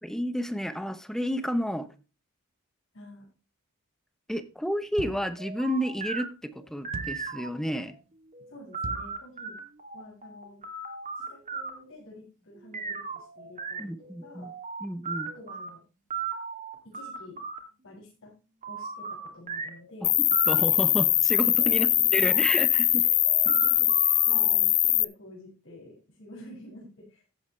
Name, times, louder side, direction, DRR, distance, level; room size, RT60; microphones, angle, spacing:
voice 1, 0.0-1.9 4.3-8.0 13.8-14.5 14.8-15.3 20.0-20.1 20.5-21.9 22.1-23.0, equal, ahead, 11 dB, 0.9 m, -31 dB
voice 2, 2.9-3.3 8.5-9.6 9.9-10.6 11.2-14.5 15.2-15.8 16.8-17.4 17.8-18.3 18.7-20.1 21.6-22.3 22.9-27.2, left 1 dB, 65° left, -4 dB, 7.2 m, -49 dB
sound 1, 5.0-7.9 8.3-11.9 12.7-15.7 16.1-17.6 18.6-19.9 20.3-20.5 21.6-21.8 22.2-22.6 23.0-24.6, right 5 dB, 35° right, 2.7 m, -37 dB
sound 2, 5.0-5.4 6.9-7.3 8.8-9.2, right 3 dB, 65° right, 0.7 m, -39 dB
Cricket, 20.0-25.0, left 13 dB, 30° left, 0.4 m, -22 dB
15.0 x 8.6 x 3.3 m, 0.32 s
head